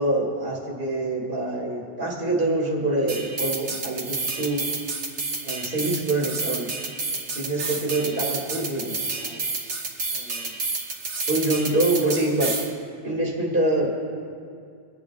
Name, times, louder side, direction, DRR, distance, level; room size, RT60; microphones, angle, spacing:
voice 1, 0.0-4.7 5.4-6.7 7.4-9.4 10.1-10.5 11.3-12.5 13.0-14.0, right 2 dB, 55° right, -5 dB, 2.2 m, -25 dB
sound 1, 3.1-12.7, right 3 dB, 85° right, 1.5 m, -30 dB
23.5 x 9.1 x 2.4 m, 2.3 s
omnidirectional pair, 1.1 m